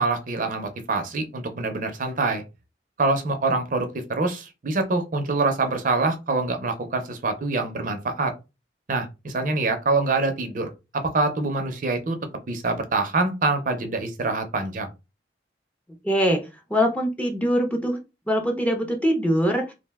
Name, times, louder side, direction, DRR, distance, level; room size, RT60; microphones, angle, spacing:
voice 1, 0.0-2.4 3.0-8.3 8.9-12.2 12.5-14.9, right 3 dB, 45° right, 6 dB, 0.5 m, -25 dB
voice 2, 16.0-18.0 18.3-19.6, equal, 10° left, 2 dB, 0.5 m, -23 dB
2.5 x 2.1 x 3.4 m, 0.26 s
head